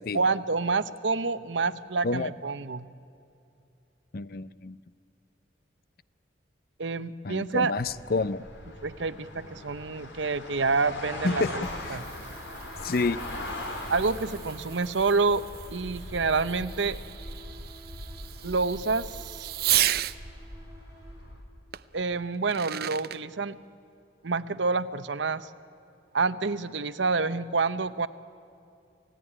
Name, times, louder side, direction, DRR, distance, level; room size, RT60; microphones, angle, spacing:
voice 1, 0.1-2.9 6.8-7.7 8.8-11.6 11.9-12.0 13.9-15.4 15.7-17.0 18.4-19.1 19.3-19.5 21.9-23.6 24.2-25.5 26.1-28.1, right 4 dB, 80° right, 13 dB, 0.8 m, -28 dB
voice 2, 4.1-4.8 7.2-8.4 11.2-11.5 11.9-12.0 12.8-13.2, left 3 dB, 50° left, 16 dB, 0.6 m, -28 dB
sound 1, 7.8-21.4, left 1 dB, 80° left, 3.6 m, -41 dB
sound 2, 11.3-21.5, equal, 20° right, 6.9 m, -54 dB
Fireworks, 11.4-20.2 21.7-21.8 22.3-23.2, right 14 dB, 55° right, 0.5 m, -34 dB
28.0 x 16.0 x 10.0 m, 2.6 s
head